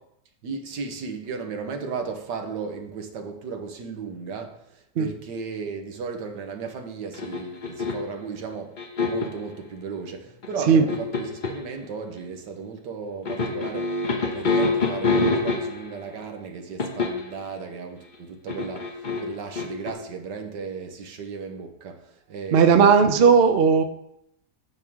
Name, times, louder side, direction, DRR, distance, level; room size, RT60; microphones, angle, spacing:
voice 1, 0.4-14.0 14.3-23.3, right 5 dB, 90° right, 4 dB, 1.7 m, -35 dB
sound 1, 7.1-8.2 8.8-9.4 10.4-11.7 13.3-16.0 16.8-17.4 18.5-19.9, left 3 dB, 45° left, 0.6 m, -26 dB
voice 2, 22.5-23.8, right 6 dB, 60° right, 7 dB, 0.6 m, -16 dB
9.0 x 3.6 x 6.2 m, 0.78 s
omnidirectional pair, 1.8 m